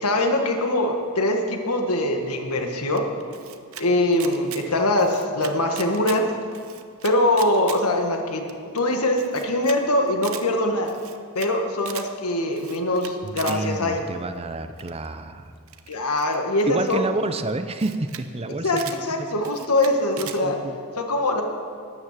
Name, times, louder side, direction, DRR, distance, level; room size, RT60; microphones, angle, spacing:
voice 1, 0.0-3.1 3.8-6.2 7.0-8.4 8.7-11.0 11.3-14.0 15.9-17.1 18.6-20.5 21.0-21.4, left 1 dB, 80° left, 3 dB, 1.6 m, -23 dB
Camera, 3.0-3.8 4.1-4.6 4.9-6.2 6.5-7.8 8.1-8.2 8.5-8.6 8.8-8.9 9.2-9.8 10.1-10.4 10.8-11.5 11.8-12.1 12.5-13.6 14.8-15.1 15.7-16.9 17.5-17.6 17.8-18.2 18.5-19.0 19.4-20.4, right 11 dB, 65° right, 0.8 m, -39 dB
voice 2, 13.2-15.5 16.7-19.3 20.4-20.8, right 2 dB, 25° right, 9 dB, 0.6 m, -29 dB
12.5 x 9.3 x 7.4 m, 2.2 s
head